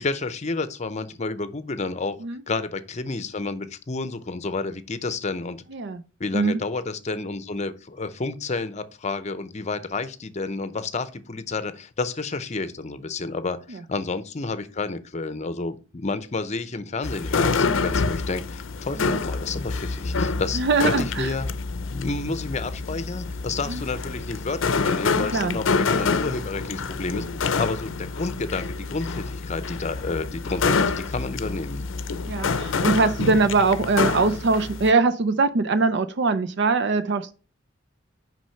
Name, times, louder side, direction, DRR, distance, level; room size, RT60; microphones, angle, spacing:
voice 1, 0.0-2.2 2.5-5.6 6.2-21.5 21.9-31.9, left 3 dB, 35° left, 0.7 m, -30 dB
voice 2, 5.7-6.0 6.3-6.6 19.0-19.2 20.5-21.3 23.7-23.8 25.2-25.6 32.3-37.3, right 3 dB, 60° right, 0.5 m, -22 dB
sound 1, 17.0-34.9, left 4 dB, 80° left, 0.6 m, -27 dB
6.1 x 5.3 x 5.6 m
head